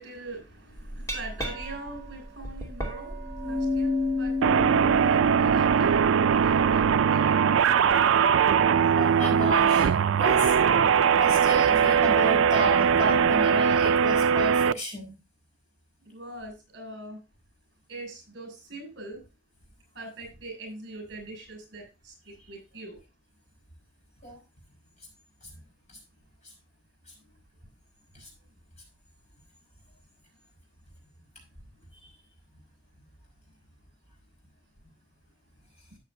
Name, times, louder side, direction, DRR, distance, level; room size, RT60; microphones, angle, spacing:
voice 1, 0.0-8.8 16.0-17.2 17.9-19.2 19.9-23.0, right 2 dB, 55° right, 4 dB, 6.5 m, -43 dB
Glass, 0.8-6.9, left 2 dB, 15° left, 2.6 m, -32 dB
sound 1, 4.4-14.7, right 7 dB, 80° right, 0.4 m, -21 dB
voice 2, 8.9-9.9 10.2-10.5 11.2-15.2 24.2-24.4 28.1-28.3, left 1 dB, 35° left, 0 dB, 5.4 m, -32 dB
13.0 x 8.6 x 2.7 m, 0.28 s
head